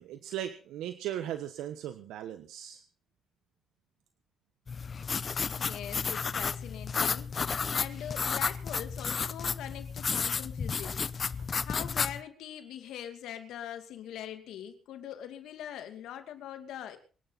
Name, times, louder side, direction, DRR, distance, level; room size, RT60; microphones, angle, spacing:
voice 1, 0.0-2.8, right 11 dB, 90° right, 10 dB, 1.1 m, -38 dB
sound 1, 4.7-12.2, left 5 dB, 40° left, 0.8 m, -32 dB
voice 2, 5.6-11.1 11.6-17.0, left 10 dB, 85° left, 7 dB, 2.5 m, -42 dB
24.5 x 11.0 x 4.1 m, 0.38 s
cardioid pair, 90°, 0 cm